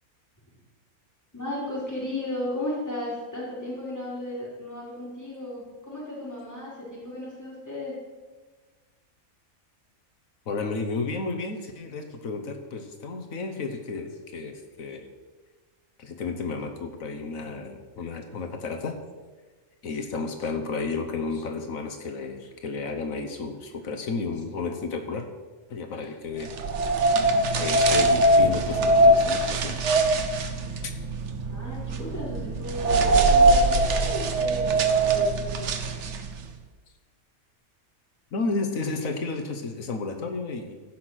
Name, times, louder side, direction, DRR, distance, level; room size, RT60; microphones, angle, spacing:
voice 1, 1.3-7.9 31.5-35.9, left 1 dB, 10° left, -7 dB, 4.1 m, -35 dB
voice 2, 10.5-15.1 16.0-19.0 19.8-25.3 25.7-26.6 27.5-29.9 30.8-30.9 38.3-40.7, left 4 dB, 70° left, 5 dB, 1.4 m, -32 dB
sound 1, 26.5-36.4, right 2 dB, 55° right, 1.2 m, -22 dB
15.0 x 5.9 x 6.4 m, 1.3 s
omnidirectional pair, 1.5 m